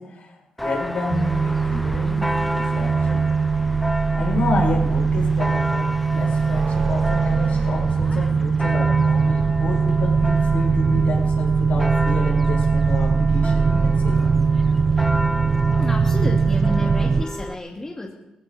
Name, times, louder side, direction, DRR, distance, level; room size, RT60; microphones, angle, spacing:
voice 1, 0.0-3.2 4.2-14.2, left 3 dB, 70° left, -2 dB, 6.4 m, -30 dB
Church bell, 0.6-17.6, left 1 dB, 5° left, 0.6 m, -32 dB
sound 1, 1.1-17.2, right 5 dB, 45° right, 0.6 m, -20 dB
voice 2, 15.7-18.2, left 1 dB, 20° left, 0 dB, 2.1 m, -31 dB
20.5 x 16.0 x 4.1 m, 0.92 s
cardioid pair, 90°, 3 cm